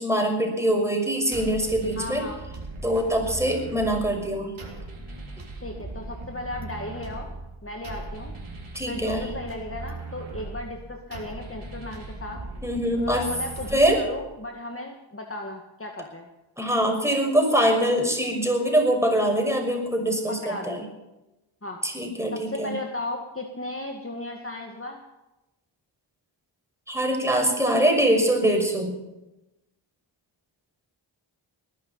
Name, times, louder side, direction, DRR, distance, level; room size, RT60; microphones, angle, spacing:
voice 1, 0.0-2.2 2.8-4.6 8.7-9.3 12.6-13.3 13.7-14.0 16.6-20.8 21.8-22.8 26.9-28.9, right 1 dB, 5° right, 2 dB, 6.0 m, -23 dB
sound 1, 1.3-14.3, right 2 dB, 80° right, 3.6 m, -39 dB
voice 2, 2.0-2.4 5.6-7.3 7.6-8.4 8.9-12.4 13.0-16.3 20.3-20.9 21.6-21.8 22.3-25.0, left 2 dB, 25° left, 2 dB, 2.1 m, -35 dB
20.0 x 11.5 x 5.8 m, 0.98 s
cardioid pair, 40°, 48 cm